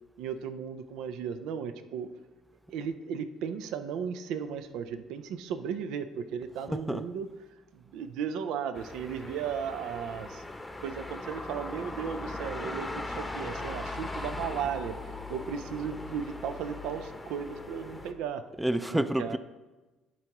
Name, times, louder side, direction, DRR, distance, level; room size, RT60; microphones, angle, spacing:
voice 1, 0.2-2.1 2.7-10.4 10.8-18.4 18.9-19.4, right 7 dB, 75° right, 0.4 m, -36 dB
voice 2, 6.7-7.0 18.6-19.4, right 1 dB, 5° right, 0.4 m, -29 dB
sound 1, 8.7-18.1, left 2 dB, 15° left, 0.8 m, -39 dB
11.0 x 4.6 x 3.0 m
supercardioid pair, 75°, 0 cm